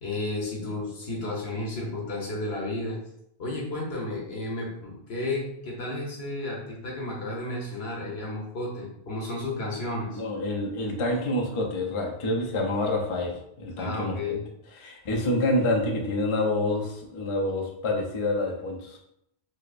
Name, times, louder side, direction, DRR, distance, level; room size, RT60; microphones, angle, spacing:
voice 1, 0.0-3.0 3.4-10.2 13.8-14.4, left 2 dB, 75° left, -3 dB, 1.2 m, -32 dB
voice 2, 10.1-14.4 14.7-19.0, left 1 dB, 40° left, 0 dB, 0.4 m, -27 dB
4.5 x 2.0 x 2.5 m, 0.78 s
omnidirectional pair, 1.1 m